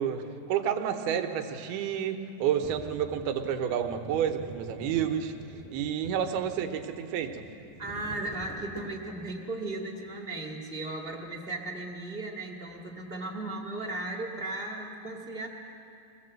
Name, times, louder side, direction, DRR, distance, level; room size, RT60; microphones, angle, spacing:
voice 1, 0.0-5.3 5.7-7.4, right 8 dB, 90° right, 6 dB, 3.1 m, -30 dB
sound 1, 2.6-9.3, equal, 5° left, 1.7 m, -47 dB
voice 2, 7.8-15.5, right 2 dB, 30° right, -1 dB, 1.1 m, -36 dB
23.5 x 18.0 x 7.7 m, 2.7 s
omnidirectional pair, 4.4 m